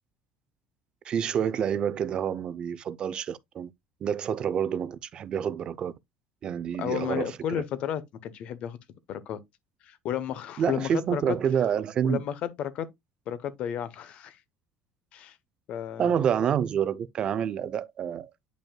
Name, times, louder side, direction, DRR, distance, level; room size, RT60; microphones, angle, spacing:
voice 1, 1.0-3.7 4.0-5.9 6.4-7.6 10.6-12.2 16.0-18.3, right 8 dB, 35° right, 0.4 m, -28 dB
voice 2, 6.8-8.8 9.1-9.4 9.8-11.4 12.0-12.9 13.3-14.4 15.1-15.4 15.7-16.1, left 10 dB, 50° left, 0.8 m, -32 dB
8.9 x 5.2 x 2.2 m
cardioid pair, 140°, 2 cm